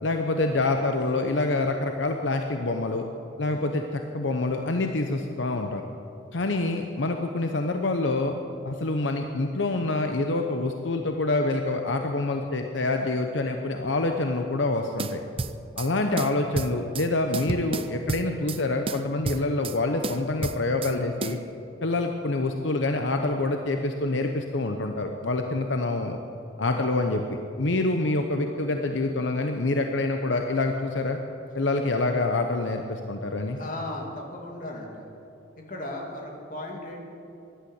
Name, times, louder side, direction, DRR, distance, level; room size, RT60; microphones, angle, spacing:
voice 1, 0.0-3.1 3.4-5.8 6.3-8.3 8.6-15.2 15.8-21.4 21.8-26.2 26.6-27.2 27.6-31.2 31.5-33.6, left 2 dB, 75° left, 5 dB, 0.9 m, -26 dB
sound 1, 15.0-15.9 16.2-17.1 17.3-18.6 18.9-19.8 20.0-20.9 21.2-21.4, right 3 dB, 30° right, 0.4 m, -31 dB
voice 2, 33.6-35.1 35.7-37.0, left 1 dB, 45° left, 0 dB, 2.4 m, -36 dB
14.5 x 11.5 x 8.0 m, 2.7 s
head